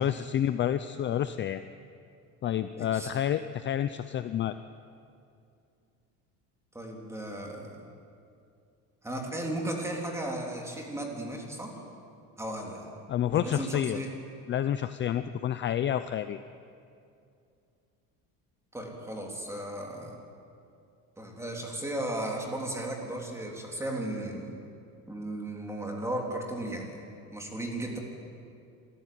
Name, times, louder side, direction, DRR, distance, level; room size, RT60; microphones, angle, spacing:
voice 1, 0.0-1.6 2.4-4.5 13.1-14.0 14.5-16.4, left 10 dB, 35° left, 11 dB, 0.5 m, -29 dB
voice 2, 2.8-3.1 6.7-7.8 9.0-11.8 12.4-12.9 13.3-14.1 18.7-20.2 21.2-24.6 25.1-28.0, right 1 dB, 10° right, 0 dB, 3.4 m, -35 dB
26.5 x 14.5 x 9.4 m, 2.5 s
cardioid pair, 150°, 35 cm